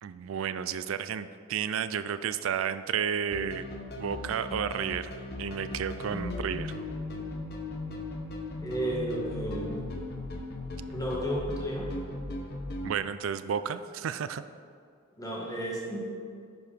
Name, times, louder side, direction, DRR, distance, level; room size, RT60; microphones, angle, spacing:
voice 1, 0.0-3.7 4.0-5.1 5.4-6.7 12.8-14.4, right 7 dB, 75° right, 13 dB, 0.4 m, -32 dB
sound 1, 3.3-12.9, left 2 dB, 50° left, 1.0 m, -37 dB
voice 2, 8.6-9.8 10.9-11.9 15.2-16.0, right 1 dB, 15° left, -3 dB, 1.6 m, -33 dB
10.5 x 4.7 x 5.0 m, 2.3 s
head